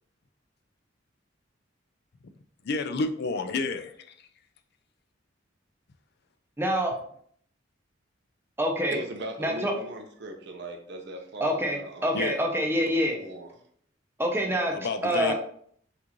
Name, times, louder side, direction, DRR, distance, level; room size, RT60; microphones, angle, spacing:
voice 1, 2.6-4.3 12.1-12.4 14.7-15.3, left 3 dB, 60° left, 9 dB, 0.4 m, -30 dB
voice 2, 6.6-6.9 8.6-9.0 9.4-9.7 11.4-13.2 14.2-14.7 15.0-15.3, equal, 10° right, 1 dB, 0.7 m, -26 dB
voice 3, 8.9-12.4 12.8-13.5, right 1 dB, 65° right, 3 dB, 0.8 m, -39 dB
6.0 x 2.6 x 3.0 m, 0.62 s
head